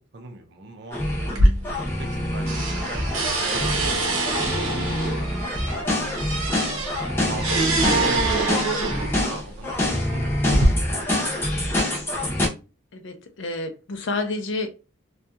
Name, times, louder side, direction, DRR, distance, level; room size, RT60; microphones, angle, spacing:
voice 1, 0.1-3.7 4.0-6.1 6.8-8.4 8.7-8.8 9.2-9.7 10.0-11.7, right 2 dB, 55° right, 0.6 m, -41 dB
sound 1, 0.9-1.4 1.6-4.0 4.2-12.5, left 1 dB, 10° left, 0.7 m, -26 dB
sound 2, 1.3-2.2 2.5-9.3 10.0-10.7, right 2 dB, 85° right, 0.8 m, -25 dB
voice 2, 12.9-14.7, left 2 dB, 60° left, 0.5 m, -29 dB
2.7 x 2.3 x 2.3 m
head